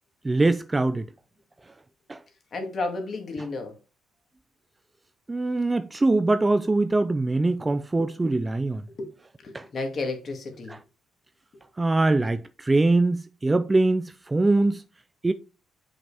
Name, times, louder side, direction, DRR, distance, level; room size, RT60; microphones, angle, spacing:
voice 1, 0.2-1.0 2.1-2.2 5.3-8.8 9.5-9.7 11.8-14.8 15.2-15.3, right 2 dB, 15° right, 0.3 m, -23 dB
voice 2, 2.5-3.8 8.0-8.3 8.9-10.7, left 3 dB, 35° left, 2.1 m, -33 dB
7.7 x 6.0 x 3.4 m
cardioid pair, 165°, 0 cm